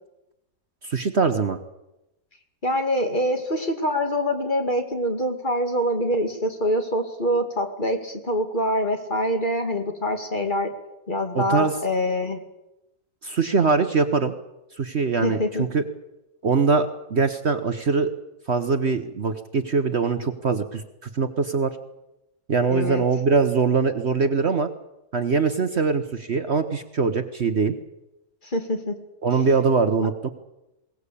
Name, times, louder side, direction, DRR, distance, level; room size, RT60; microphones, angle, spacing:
voice 1, 0.8-1.6 11.3-11.7 13.2-14.3 14.8-15.8 16.4-18.1 18.5-21.8 22.5-24.7 25.1-27.7 29.2-30.3, right 4 dB, 45° right, 9 dB, 1.3 m, -22 dB
voice 2, 2.6-10.7 11.1-12.4 15.2-15.7 22.7-23.0 28.4-29.0, equal, 30° left, 5 dB, 2.3 m, -25 dB
21.5 x 18.5 x 8.4 m, 0.94 s
omnidirectional pair, 1.7 m